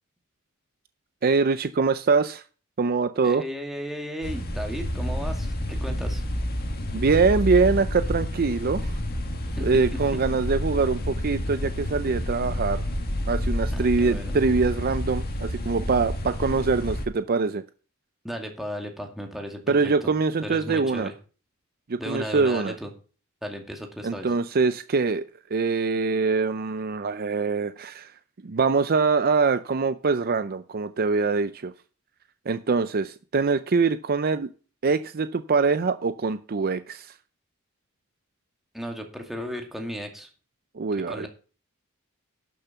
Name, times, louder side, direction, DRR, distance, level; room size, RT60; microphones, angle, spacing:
voice 1, 1.2-2.4 2.8-3.4 6.9-8.9 9.6-12.8 13.3-17.6 19.7-21.1 21.9-22.7 24.0-25.2 25.5-28.1 28.4-31.7 32.5-34.5 34.8-37.1 40.8-41.3, right 4 dB, 45° right, 12 dB, 0.5 m, -24 dB
voice 2, 3.2-6.2 9.5-10.0 13.7-14.4 18.2-20.1 20.4-21.1 22.0-22.9 23.4-24.3 38.7-40.3 40.9-41.3, equal, ahead, 2 dB, 2.1 m, -35 dB
sound 1, 4.2-17.1, left 1 dB, 45° left, 1.9 m, -29 dB
12.0 x 6.7 x 5.8 m, 0.38 s
head